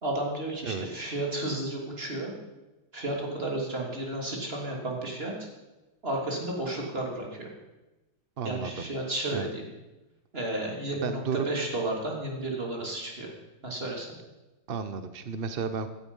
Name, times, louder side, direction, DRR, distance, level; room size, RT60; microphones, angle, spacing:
voice 1, 0.0-2.3 2.9-5.5 6.0-7.5 8.4-9.7 10.3-11.2 11.5-13.3 13.6-14.1, right 1 dB, 25° right, -1 dB, 3.2 m, -32 dB
voice 2, 8.4-8.9 9.3-9.5 11.0-11.5 14.7-15.9, right 6 dB, 75° right, 10 dB, 0.5 m, -32 dB
16.0 x 13.5 x 5.4 m, 1.1 s
omnidirectional pair, 2.3 m